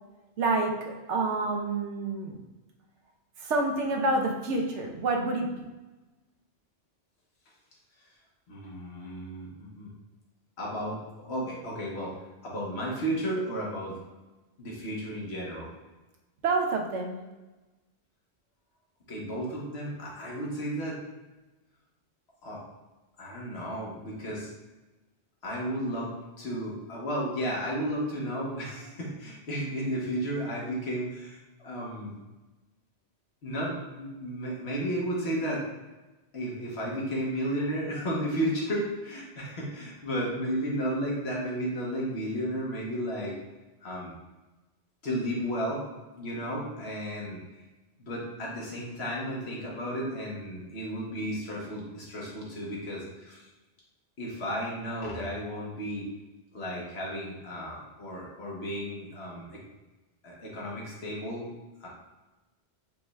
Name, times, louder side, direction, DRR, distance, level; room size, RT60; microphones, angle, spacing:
voice 1, 0.4-2.4 3.4-5.6 16.4-17.2, right 2 dB, 90° right, 2 dB, 1.0 m, -28 dB
voice 2, 8.5-9.9 10.6-12.2 12.4-14.0 14.6-15.7 19.1-21.0 22.4-22.6 23.2-24.5 25.4-26.1 26.4-31.4 31.6-32.2 33.4-35.6 36.3-43.4 43.8-44.1 45.0-45.8 46.2-47.4 48.0-53.4 54.2-56.1 56.5-59.4 60.2-61.5 61.8-61.9, equal, 70° left, -4 dB, 1.3 m, -33 dB
5.0 x 2.3 x 3.1 m, 1.1 s
omnidirectional pair, 1.2 m